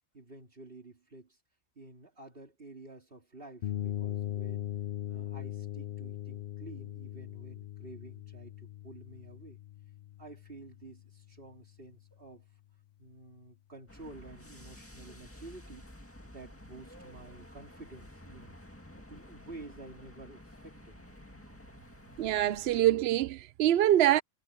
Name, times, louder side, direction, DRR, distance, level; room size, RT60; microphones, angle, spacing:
voice 1, 0.1-1.4 1.8-4.7 5.1-9.6 10.2-12.5 13.0-15.9 16.2-18.6 19.0-21.0, right 2 dB, 45° right, 3.5 m, -51 dB
sound 1, 3.6-11.4, left 12 dB, 55° left, 0.6 m, -40 dB
sound 2, 13.9-22.9, left 1 dB, 10° left, 1.9 m, -51 dB
voice 2, 22.2-24.2, right 12 dB, 65° right, 0.7 m, -25 dB
omnidirectional pair, 1.3 m